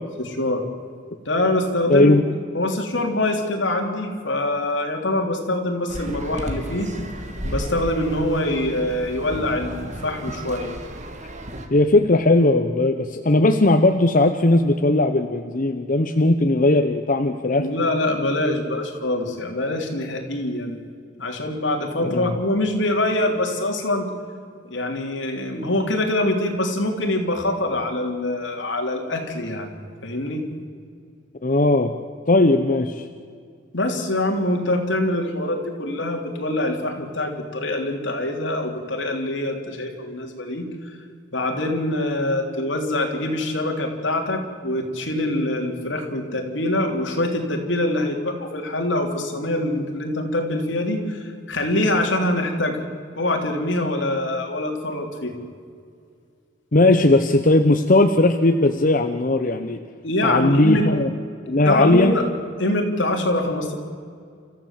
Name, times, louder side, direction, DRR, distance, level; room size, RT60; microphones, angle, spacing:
voice 1, 0.2-0.6 1.3-2.2 2.5-6.9 7.4-10.7 17.5-20.8 21.2-24.1 24.7-29.7 30.0-30.4 33.7-40.9 41.3-52.8 53.2-55.3 60.0-61.0 61.6-62.3 62.6-63.7, left 1 dB, 75° left, 2 dB, 3.4 m, -24 dB
voice 2, 1.9-2.2 11.7-17.7 22.0-22.3 31.4-31.9 32.3-33.1 56.7-59.8 60.2-61.1 61.5-62.2, left 2 dB, 45° left, 6 dB, 0.9 m, -18 dB
sound 1, 5.9-11.7, right 1 dB, 40° right, 2.2 m, -33 dB
29.5 x 14.5 x 7.5 m, 2.2 s
head